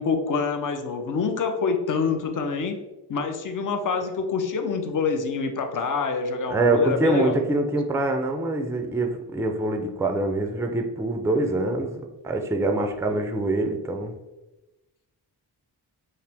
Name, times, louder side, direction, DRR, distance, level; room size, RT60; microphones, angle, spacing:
voice 1, 0.0-2.8 3.1-7.4, left 5 dB, 50° left, 6 dB, 0.6 m, -26 dB
voice 2, 6.5-14.1, right 2 dB, 5° right, 4 dB, 0.4 m, -25 dB
5.5 x 2.0 x 3.4 m, 1.0 s
wide cardioid pair, 110°, 41 cm